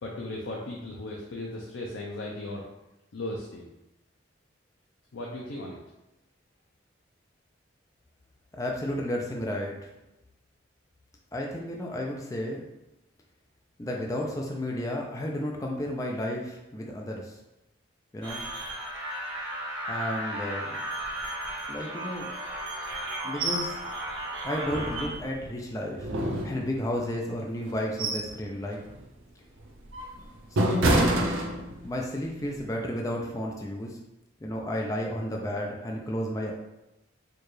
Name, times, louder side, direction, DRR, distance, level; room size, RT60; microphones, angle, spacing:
voice 1, 0.0-2.6 3.1-3.7 5.1-5.8, left 1 dB, 80° left, -1 dB, 0.5 m, -36 dB
voice 2, 8.5-9.9 11.3-12.6 13.8-17.4 18.1-18.4 19.9-20.8 21.7-22.3 23.2-23.8 24.4-26.1 26.4-28.8 30.5-31.4 31.8-34.0 34.4-36.5, left 1 dB, 15° left, 0 dB, 0.4 m, -32 dB
sound 1, 18.2-25.1, right 1 dB, 60° right, 1.0 m, -35 dB
sound 2, 23.4-23.7 24.1-24.2 24.7-25.5 26.0-27.0 27.6-28.4 28.8-29.0 29.6-32.0 32.4-32.6, right 1 dB, 85° right, 0.6 m, -27 dB
4.5 x 2.3 x 3.1 m, 0.93 s
head